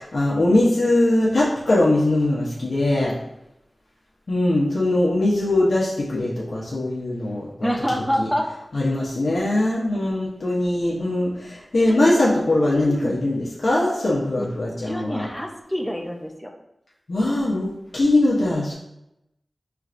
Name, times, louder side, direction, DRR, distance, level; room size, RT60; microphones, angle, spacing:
voice 1, 0.0-3.1 4.3-7.7 8.2-8.3 8.7-15.3 17.1-18.7, left 1 dB, 70° left, -6 dB, 0.8 m, -21 dB
voice 2, 7.6-8.5 12.6-13.2 14.3-14.5 14.9-16.5, equal, ahead, 2 dB, 0.6 m, -27 dB
4.6 x 3.2 x 2.5 m, 0.87 s
wide cardioid pair, 75°, 0 cm